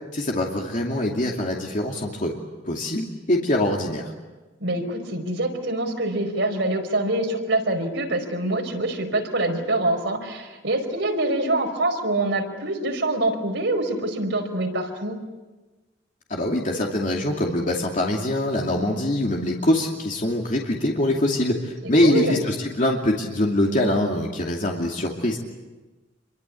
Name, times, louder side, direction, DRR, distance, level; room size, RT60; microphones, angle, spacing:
voice 1, 0.1-2.3 2.7-4.0 16.3-25.4, left 1 dB, 45° left, 0 dB, 2.6 m, -23 dB
voice 2, 4.6-15.2 21.8-22.4, right 2 dB, 70° right, 3 dB, 4.9 m, -25 dB
27.5 x 23.5 x 8.5 m, 1.2 s
head